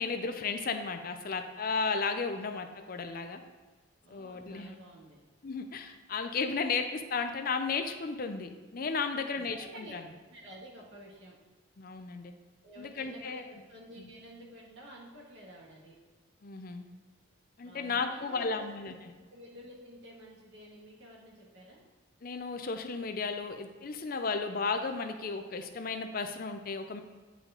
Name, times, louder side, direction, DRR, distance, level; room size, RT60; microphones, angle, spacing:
voice 1, 0.0-3.4 4.1-4.7 5.4-10.0 11.8-12.3 12.8-13.4 14.0-14.1 16.4-16.8 17.6-18.9 22.2-27.0, left 4 dB, 45° left, 7 dB, 0.5 m, -34 dB
voice 2, 4.0-5.2 9.4-9.9 10.3-11.3 12.6-16.0 17.6-19.0 19.3-21.8, equal, 60° right, -3 dB, 1.9 m, -51 dB
8.9 x 5.0 x 3.8 m, 1.4 s
head